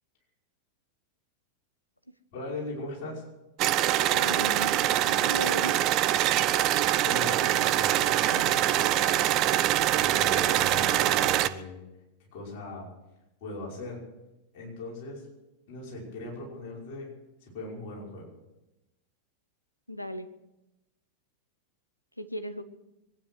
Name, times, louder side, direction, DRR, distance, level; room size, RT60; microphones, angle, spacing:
voice 1, 2.3-3.2 7.0-9.2 10.0-11.8 12.2-12.9 13.4-14.0 14.5-15.3 15.7-17.1 17.4-18.3, left 2 dB, 45° left, -3 dB, 5.5 m, -39 dB
sound 1, 3.6-11.5, right 13 dB, 40° right, 0.7 m, -24 dB
voice 2, 4.1-4.7 5.0-5.8 19.9-20.3 22.2-22.6, left 1 dB, 90° left, 10 dB, 1.0 m, -36 dB
23.0 x 9.8 x 6.4 m, 0.96 s
figure-of-eight pair, 90°, 0 cm